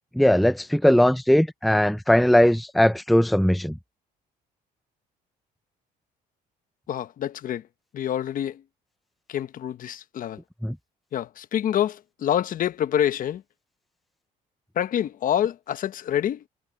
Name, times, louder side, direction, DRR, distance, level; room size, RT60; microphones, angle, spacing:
voice 1, 0.2-3.7 10.6-10.8, left 1 dB, ahead, 0.6 m, -19 dB
voice 2, 6.9-7.6 7.9-8.6 9.3-10.4 11.1-13.4 14.8-16.4, left 10 dB, 55° left, 1.1 m, -26 dB
cardioid pair, 110°, 17 cm